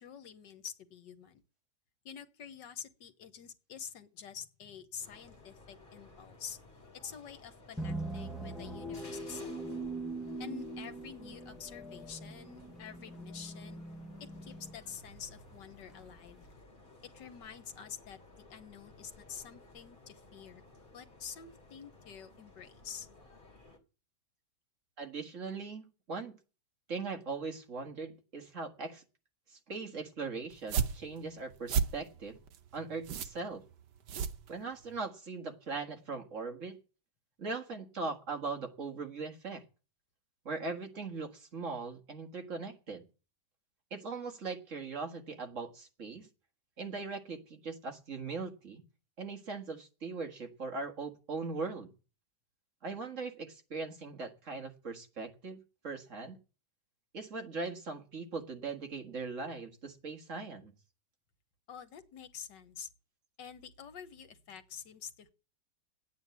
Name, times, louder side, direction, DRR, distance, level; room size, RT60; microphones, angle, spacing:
voice 1, 0.0-1.4 2.1-6.6 7.0-9.6 10.4-13.8 14.4-16.5 17.0-20.6 20.9-23.1 61.7-62.9 63.4-65.3, left 7 dB, 80° left, 9 dB, 1.8 m, -48 dB
sound 1, 5.0-23.8, left 2 dB, 30° left, 2.8 m, -57 dB
sound 2, 7.8-16.5, right 2 dB, ahead, 0.9 m, -42 dB
voice 2, 25.0-26.3 26.9-29.0 29.5-32.4 32.7-33.6 34.5-36.8 37.4-39.6 40.5-43.0 43.9-46.3 46.8-48.8 49.2-51.9 52.8-56.4 57.1-60.7, right 4 dB, 45° right, 4 dB, 2.0 m, -40 dB
sound 3, 30.5-35.0, right 6 dB, 75° right, 1.5 m, -35 dB
10.5 x 9.1 x 8.2 m, 0.36 s
omnidirectional pair, 1.9 m